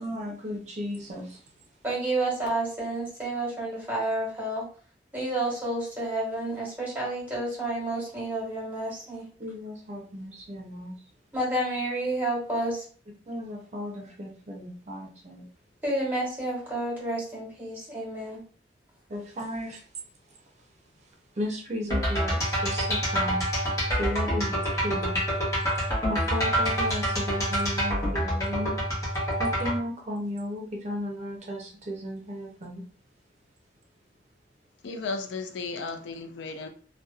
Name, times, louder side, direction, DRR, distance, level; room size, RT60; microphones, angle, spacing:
voice 1, 0.0-1.4 9.4-10.9 13.3-15.4 19.1-19.8 21.4-23.4 24.0-25.2 26.1-28.7 29.4-32.8, equal, 40° right, 0.5 m, -34 dB
voice 2, 1.8-4.7 5.1-9.3 11.3-12.8 15.8-18.4, right 1 dB, 10° right, 1.2 m, -30 dB
sound 1, 21.9-29.8, equal, 20° left, 0.9 m, -27 dB
voice 3, 34.8-36.7, left 4 dB, 85° left, 0.4 m, -34 dB
2.7 x 2.1 x 2.3 m
head